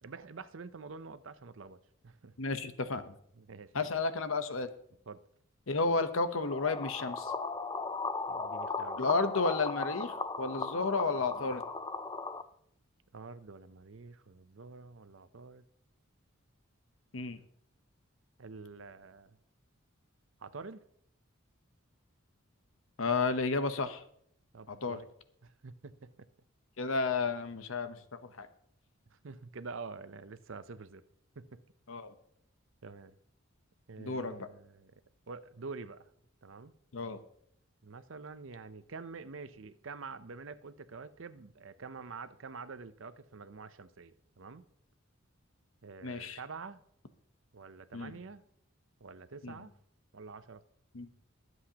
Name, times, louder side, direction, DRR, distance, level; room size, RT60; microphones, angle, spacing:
voice 1, 0.0-2.3 3.4-3.9 5.1-5.2 8.3-9.0 13.1-15.6 18.4-19.4 20.4-20.8 24.5-25.1 25.4-26.3 29.1-31.0 31.4-31.6 32.8-33.1 33.9-34.9 35.3-36.1 36.4-36.7 37.8-44.6 45.8-46.8 47.5-48.4 49.0-49.7 50.1-50.6, right 4 dB, 65° right, 0.6 m, -47 dB
voice 2, 2.4-3.2 3.7-4.7 5.7-7.3 9.0-11.6 17.1-17.4 23.0-24.0 24.7-25.0 26.8-28.5 31.9-32.1 34.0-34.5 36.9-37.2 46.0-46.4 47.9-48.2 49.4-49.6 50.9-51.1, left 4 dB, 70° left, 0.9 m, -32 dB
sound 1, 6.4-12.4, left 4 dB, 20° left, 0.5 m, -37 dB
22.5 x 8.0 x 2.9 m
head